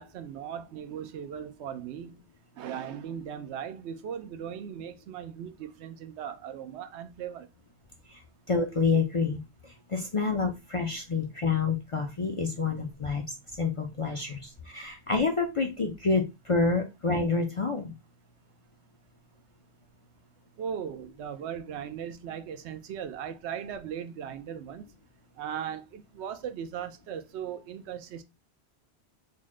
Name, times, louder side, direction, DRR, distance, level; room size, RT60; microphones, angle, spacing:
voice 1, 0.0-2.2 2.6-7.5 14.1-14.2 20.6-24.9 25.4-28.2, right 8 dB, 80° right, 0.9 m, -38 dB
voice 2, 8.5-9.4 9.9-13.2 13.6-14.4 14.7-16.2 16.5-17.9, left 4 dB, 45° left, 0.4 m, -27 dB
4.0 x 2.1 x 3.6 m
omnidirectional pair, 1.1 m